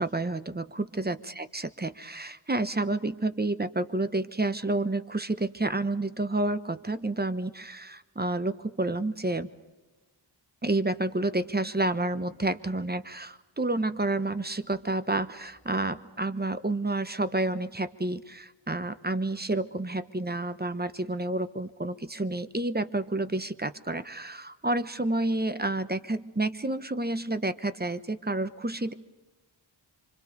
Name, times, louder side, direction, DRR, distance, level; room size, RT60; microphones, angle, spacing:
voice 1, 0.0-9.5 10.6-28.9, right 2 dB, 20° right, 11 dB, 1.0 m, -30 dB
26.5 x 25.0 x 5.3 m, 1.2 s
wide cardioid pair, 50°, 48 cm